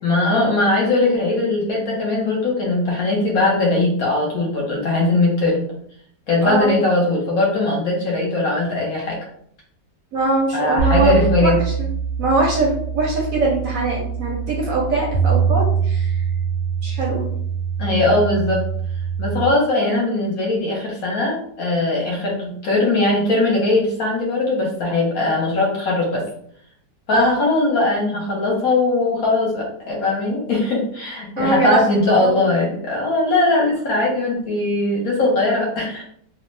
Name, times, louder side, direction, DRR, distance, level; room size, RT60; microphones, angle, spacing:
voice 1, 0.0-5.6 6.3-9.2 10.5-11.6 17.8-18.6 19.2-26.2 27.1-36.0, left 2 dB, 60° left, -3 dB, 1.1 m, -20 dB
voice 2, 6.4-6.8 10.1-11.5 11.8-11.9 12.2-16.3 16.8-17.3 27.1-27.4 31.4-32.4, right 2 dB, 65° right, -2 dB, 0.8 m, -22 dB
sound 1, 10.8-19.5, right 7 dB, 90° right, 1.3 m, -23 dB
2.9 x 2.0 x 3.1 m, 0.66 s
omnidirectional pair, 1.9 m